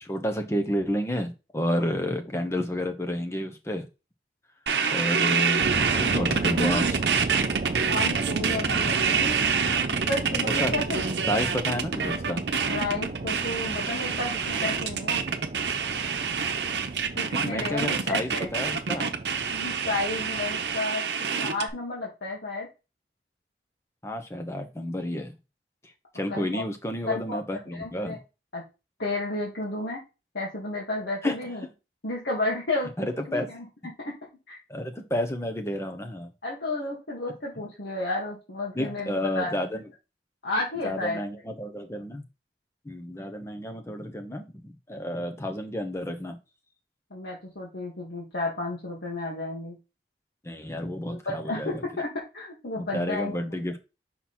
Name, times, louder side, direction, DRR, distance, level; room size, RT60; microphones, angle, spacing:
voice 1, 0.0-3.9 4.9-7.0 10.5-10.7 11.3-12.4 17.3-19.1 24.0-25.3 26.1-28.2 31.2-31.3 33.0-33.5 34.7-36.3 38.7-39.9 40.8-42.2 42.8-46.4 50.4-51.8 52.8-53.8, left 1 dB, 15° left, 6 dB, 0.8 m, -30 dB
sound 1, 4.7-21.7, right 6 dB, 75° right, 0.8 m, -26 dB
sound 2, 5.6-20.8, right 3 dB, 45° right, 0.4 m, -34 dB
voice 2, 7.9-9.3 9.9-11.3 12.7-15.2 17.1-18.5 19.5-21.0 21.3-22.7 26.3-26.6 27.1-28.2 28.5-28.6 29.0-30.0 30.3-31.6 32.0-34.1 34.5-34.6 36.4-39.5 40.4-41.2 47.1-49.8 51.1-52.1 52.3-53.4, left 2 dB, 75° left, -4 dB, 1.7 m, -32 dB
5.8 x 4.0 x 4.3 m, 0.28 s
head